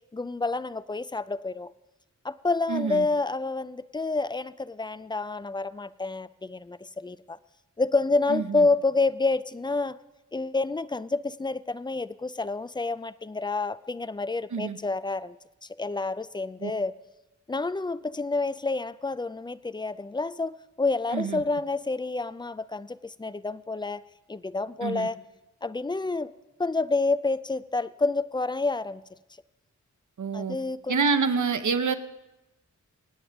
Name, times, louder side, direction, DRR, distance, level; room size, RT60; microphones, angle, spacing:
voice 1, 0.1-1.7 2.2-7.4 7.8-10.0 10.3-15.4 15.8-16.9 17.5-24.0 24.3-25.2 25.6-26.3 26.6-29.0 30.3-31.0, left 3 dB, 15° left, 16 dB, 0.4 m, -28 dB
voice 2, 2.7-3.1 8.3-8.7 14.5-14.8 16.6-16.7 21.1-21.4 24.8-25.1 30.2-30.6 30.9-31.9, right 5 dB, 70° right, 10 dB, 0.9 m, -27 dB
25.0 x 8.9 x 3.5 m, 1.0 s
wide cardioid pair, 75°, 31 cm